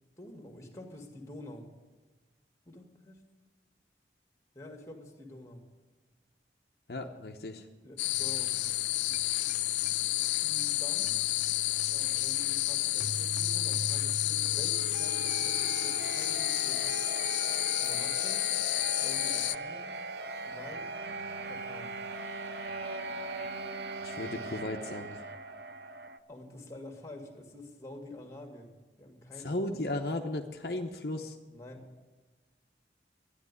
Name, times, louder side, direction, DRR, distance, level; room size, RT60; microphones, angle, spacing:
voice 1, 0.2-1.7 2.7-3.2 4.5-5.6 7.8-8.6 10.4-11.2 11.9-16.9 17.8-18.5 19.0-20.0 20.3-21.0 21.4-21.9 26.3-28.7 29.0-29.5 31.5-31.9, left 1 dB, 15° left, 4 dB, 2.0 m, -48 dB
voice 2, 6.9-7.7 24.0-25.2 29.3-31.4, left 2 dB, 60° left, 3 dB, 0.9 m, -35 dB
sound 1, 8.0-19.6, left 17 dB, 85° left, 0.4 m, -30 dB
sound 2, 8.1-26.2, right 2 dB, 70° right, 0.8 m, -41 dB
Wind instrument woodwind instrument, 20.7-25.2, right 2 dB, 40° right, 2.6 m, -44 dB
12.5 x 10.0 x 9.7 m, 1.3 s
head